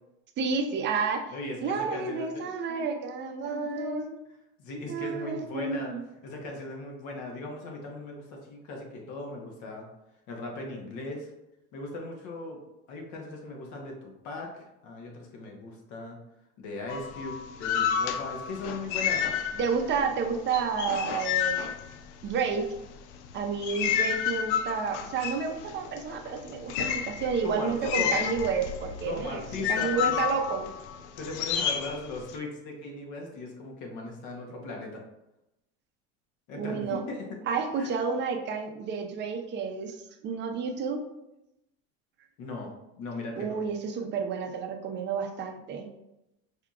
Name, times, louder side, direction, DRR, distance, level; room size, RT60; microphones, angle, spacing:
voice 1, 0.4-1.3 1.6-4.1 4.9-6.0 19.5-21.7 22.2-22.7 23.3-30.7 36.5-37.0 37.5-41.0 43.4-45.9, right 5 dB, 35° right, 4 dB, 0.6 m, -30 dB
voice 2, 1.3-2.4 2.7-2.9 3.2-4.1 4.6-5.9 6.2-9.9 10.3-11.3 11.7-12.6 12.9-16.2 16.6-19.4 27.4-28.3 29.0-30.4 31.2-35.0 36.5-37.4 37.7-37.9 42.4-43.6, left 2 dB, 60° left, 1 dB, 1.1 m, -38 dB
sound 1, 16.9-20.0 20.2-22.5 23.1-32.4, left 8 dB, 80° left, 0.5 m, -30 dB
4.7 x 2.8 x 2.4 m, 0.89 s
supercardioid pair, 130°, 34 cm